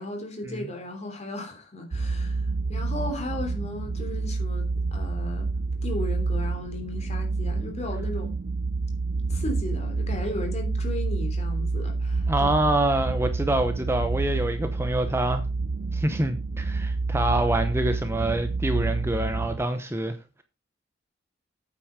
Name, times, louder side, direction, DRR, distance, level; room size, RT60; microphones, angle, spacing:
voice 1, 0.0-5.5 5.8-8.3 9.3-12.5, left 1 dB, 35° left, 3.1 m, -35 dB
sound 1, 1.9-19.6, right 3 dB, 50° right, 0.4 m, -28 dB
voice 2, 12.3-15.4 15.9-20.4, right 1 dB, 15° right, 0.8 m, -26 dB
8.9 x 7.7 x 5.0 m
head